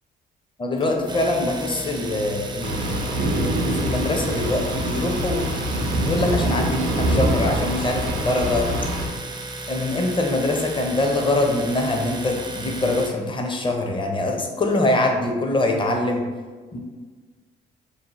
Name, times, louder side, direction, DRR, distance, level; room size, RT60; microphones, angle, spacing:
voice 1, 0.6-5.5 6.1-8.7 9.7-16.2 16.7-16.8, left 2 dB, 25° left, 2 dB, 0.6 m, -24 dB
sound 1, 0.8-8.0, left 2 dB, 75° left, 0.5 m, -40 dB
Domestic sounds home sounds, 1.1-13.1, right 2 dB, 20° right, 0.4 m, -34 dB
sound 2, 2.6-9.1, right 1 dB, 90° right, 0.5 m, -25 dB
2.7 x 2.0 x 3.0 m, 1.4 s
supercardioid pair, 60°, 21 cm